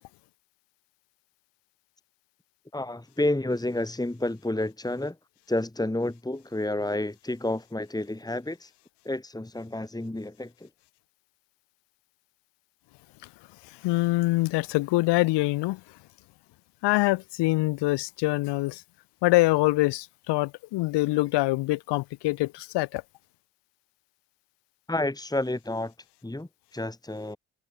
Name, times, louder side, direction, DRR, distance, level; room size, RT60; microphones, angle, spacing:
voice 1, 2.7-5.2 5.5-8.7 9.0-10.7 24.9-25.9 26.2-27.4, left 1 dB, 10° left, 2.9 m, -30 dB
voice 2, 13.8-15.8 16.8-18.8 19.2-23.0, left 20 dB, 80° left, 1.4 m, -24 dB
supercardioid pair, 55°, 40 cm